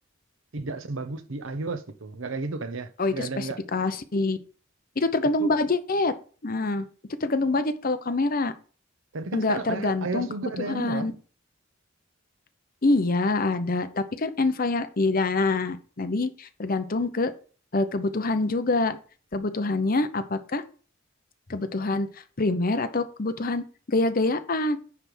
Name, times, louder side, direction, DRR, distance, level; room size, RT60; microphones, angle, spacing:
voice 1, 0.5-3.6 5.4-5.6 9.1-11.1, right 3 dB, 80° right, 0.9 m, -33 dB
voice 2, 3.0-4.4 5.0-6.1 6.4-6.9 7.2-8.5 9.3-10.3 10.6-11.1 12.8-17.3 17.7-19.0 19.3-20.6 21.5-22.1 22.4-24.8, left 2 dB, 45° left, 0.8 m, -25 dB
9.8 x 3.5 x 6.1 m
head